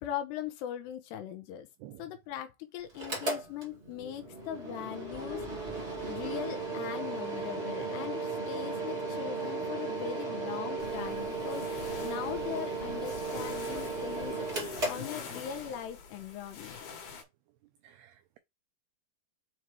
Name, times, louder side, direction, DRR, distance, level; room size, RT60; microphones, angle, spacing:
voice 1, 0.0-1.7 2.0-5.7 6.1-14.5 14.9-16.8, left 10 dB, 80° left, 2.7 m, -40 dB
Mechanical fan, 2.9-15.7, right 3 dB, 40° right, 1.0 m, -36 dB
sound 1, 10.8-17.2, left 5 dB, 60° left, 3.5 m, -46 dB
voice 2, 17.8-18.4, right 14 dB, 85° right, 2.3 m, -51 dB
7.3 x 3.1 x 4.8 m
omnidirectional pair, 5.2 m